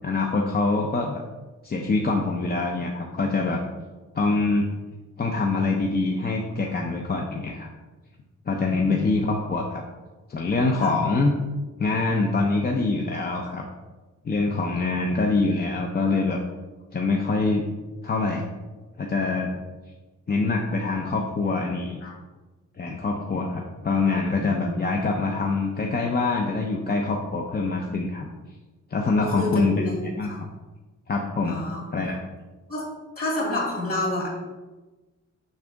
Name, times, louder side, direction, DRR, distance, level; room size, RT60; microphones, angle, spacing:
voice 1, 0.0-1.2 1.6-3.6 4.1-4.7 5.2-7.7 8.5-9.8 10.3-11.3 11.8-13.6 14.2-16.4 16.9-17.6 18.0-18.5 19.0-19.6 20.3-22.0 22.8-28.3 28.9-30.3 31.1-31.6 31.9-32.2, left 3 dB, 35° left, 1 dB, 0.5 m, -24 dB
voice 2, 8.7-9.2 10.8-10.9 22.0-22.1 24.3-24.7 29.2-30.0 30.3-30.4 31.4-32.1 32.7-32.9 33.2-34.3, left 1 dB, 50° left, -3 dB, 2.4 m, -29 dB
6.5 x 6.1 x 3.4 m, 1.2 s
wide cardioid pair, 175°, 30 cm